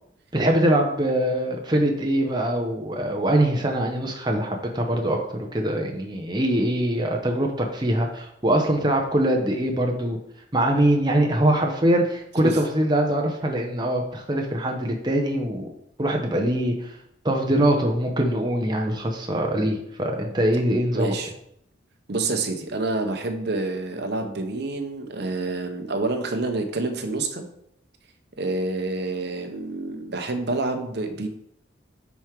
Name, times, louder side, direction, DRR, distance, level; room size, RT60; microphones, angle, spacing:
voice 1, 0.3-10.2 10.5-15.7 16.0-16.9 17.2-21.1, right 1 dB, 20° right, 1 dB, 0.8 m, -23 dB
voice 2, 20.9-21.3 22.1-27.4 28.4-31.3, right 3 dB, 55° right, 5 dB, 0.8 m, -27 dB
5.5 x 4.5 x 4.6 m, 0.74 s
head